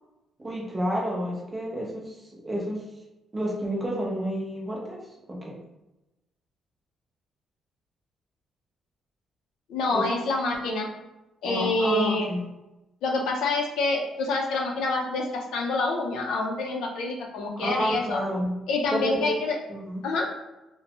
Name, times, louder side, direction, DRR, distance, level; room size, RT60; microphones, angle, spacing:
voice 1, 0.4-2.1 2.4-2.8 3.3-5.0 5.3-5.6 9.9-10.1 11.4-12.4 17.6-18.6 18.9-19.3 19.7-20.0, equal, 15° right, -2 dB, 0.6 m, -30 dB
voice 2, 9.7-10.9 11.4-12.3 13.0-18.2 18.7-19.6 20.0-20.3, left 2 dB, 85° left, 1 dB, 0.5 m, -27 dB
3.0 x 2.1 x 2.9 m, 0.97 s
cardioid pair, 160°, 0 cm